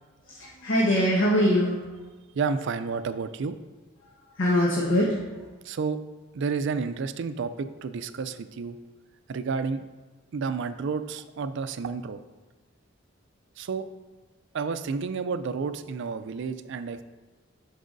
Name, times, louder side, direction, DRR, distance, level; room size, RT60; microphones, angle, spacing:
voice 1, 0.2-1.8 4.3-5.3, equal, 70° left, -6 dB, 1.2 m, -23 dB
voice 2, 2.3-3.5 5.6-6.0 6.3-8.8 9.3-9.8 10.3-12.2 13.6-13.9 14.5-17.0, right 5 dB, 60° right, 11 dB, 0.4 m, -30 dB
11.5 x 4.7 x 2.6 m, 1.3 s
head